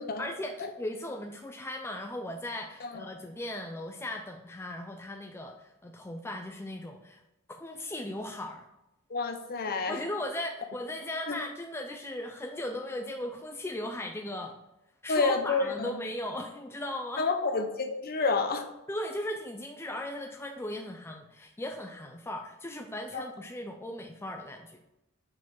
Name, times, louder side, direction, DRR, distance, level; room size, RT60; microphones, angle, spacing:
voice 1, 0.2-7.2 7.6-8.7 9.9-14.5 15.0-17.3 18.9-24.8, left 1 dB, 10° left, 3 dB, 0.4 m, -37 dB
voice 2, 9.1-10.0 11.3-11.4 15.1-16.0 17.2-18.7 23.1-23.2, left 4 dB, 45° left, 5 dB, 0.8 m, -29 dB
5.7 x 4.9 x 4.6 m, 0.92 s
head